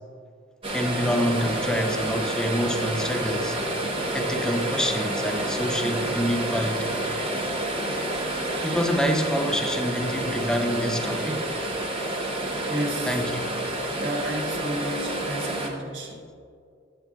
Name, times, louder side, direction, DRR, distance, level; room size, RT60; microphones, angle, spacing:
sound 1, 0.6-15.7, right 1 dB, 30° right, 0.9 m, -29 dB
voice 1, 0.7-3.6 4.1-7.0 8.6-11.5 13.1-13.6, equal, 5° left, 4 dB, 0.5 m, -27 dB
voice 2, 12.5-13.2 14.0-16.2, equal, 75° right, -1 dB, 1.4 m, -32 dB
8.9 x 8.5 x 2.3 m, 2.3 s
head